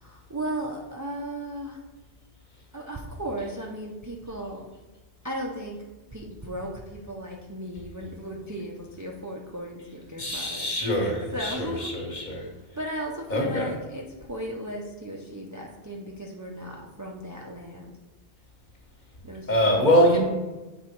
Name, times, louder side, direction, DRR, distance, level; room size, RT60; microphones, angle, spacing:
voice 1, 0.0-1.8 2.7-4.7 5.2-5.8 6.1-12.3 12.7-17.9 19.2-19.7, right 1 dB, 25° right, -1 dB, 0.5 m, -36 dB
voice 2, 10.2-12.5 12.8-13.0 13.3-13.7 19.5-20.2, equal, 45° left, -1 dB, 1.5 m, -24 dB
7.2 x 3.7 x 4.5 m, 1.2 s
omnidirectional pair, 1.1 m